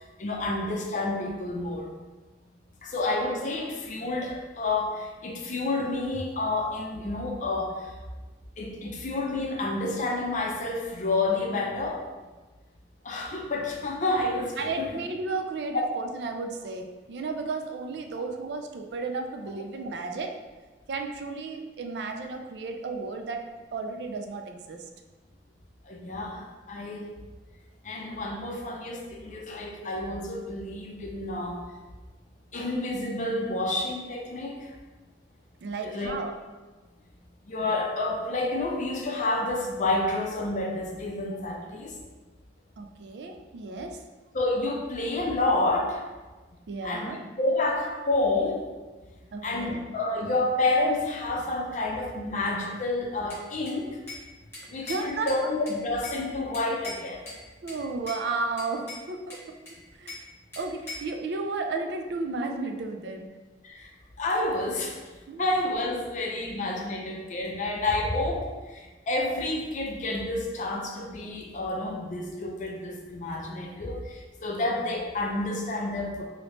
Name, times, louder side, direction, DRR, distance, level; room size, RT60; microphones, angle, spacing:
voice 1, 0.2-1.9 2.8-7.9 8.6-12.0 13.0-14.9 25.8-27.1 27.8-31.6 32.5-34.7 35.8-36.2 37.5-41.9 44.3-46.0 46.8-47.1 47.4-48.6 49.4-54.0 54.7-57.2 63.6-63.9 64.2-65.0 65.4-76.3, left 2 dB, 45° left, 0 dB, 0.5 m, -29 dB
voice 2, 14.6-20.3 20.9-23.4 23.7-24.8 35.6-36.3 42.8-44.0 46.7-47.2 49.3-49.8 54.8-55.5 57.6-59.4 59.9-60.2 60.6-63.3 65.3-65.4, right 3 dB, 65° right, 4 dB, 0.3 m, -33 dB
Bell / Glass, 53.3-54.3 54.5-56.2 56.5-57.4 57.7-58.2 58.6-60.3 60.5-61.1, left 2 dB, 15° left, 1.2 m, -41 dB
3.0 x 2.8 x 3.1 m, 1.3 s
head